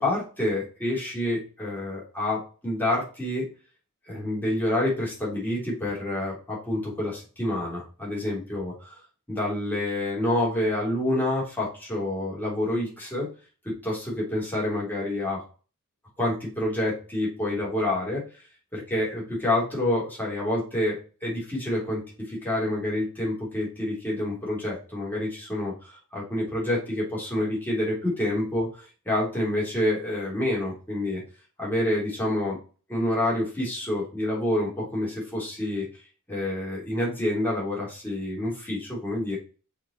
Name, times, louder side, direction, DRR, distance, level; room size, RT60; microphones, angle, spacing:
voice 1, 0.0-3.4 4.1-9.0 9.3-13.3 13.7-15.4 16.2-18.2 18.7-21.0 21.2-22.0 22.3-31.2 31.6-32.6 32.9-35.9 36.3-39.4, left 1 dB, 10° left, -6 dB, 3.5 m, -28 dB
6.3 x 4.9 x 4.3 m, 0.36 s
head